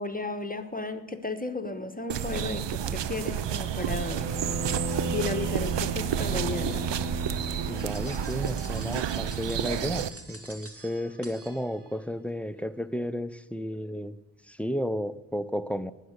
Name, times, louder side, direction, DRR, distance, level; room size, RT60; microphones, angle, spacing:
voice 1, 0.0-4.5 5.0-6.8, left 2 dB, 20° left, 8 dB, 1.1 m, -34 dB
sound 1, 2.1-10.1, right 9 dB, 70° right, 0.7 m, -31 dB
Bowed string instrument, 4.1-8.6, right 3 dB, 15° right, 5.0 m, -34 dB
voice 2, 7.7-14.2 14.5-15.9, equal, 5° left, 15 dB, 0.6 m, -33 dB
sound 2, 7.8-12.0, right 2 dB, 30° right, 1.9 m, -47 dB
19.0 x 6.6 x 6.6 m, 1.1 s
cardioid pair, 55°, 46 cm